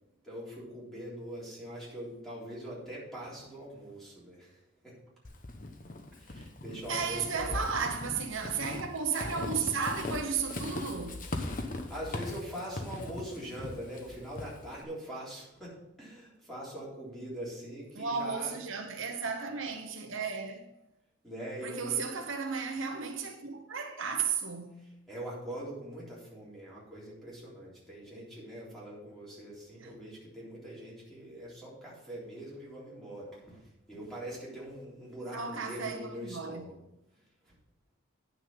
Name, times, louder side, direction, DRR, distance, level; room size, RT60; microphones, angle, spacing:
voice 1, 0.2-5.0 6.1-7.7 11.5-18.6 21.2-22.0 25.1-33.6 33.9-36.8 37.4-37.5, right 1 dB, ahead, 3.7 m, -43 dB
Walk footsteps / Squeak, 5.2-14.8, left 2 dB, 40° left, 1.0 m, -39 dB
voice 2, 6.9-11.2 17.9-20.6 21.6-24.9 29.8-29.9 35.3-36.7, right 5 dB, 70° right, 1.0 m, -34 dB
9.6 x 6.2 x 5.4 m
head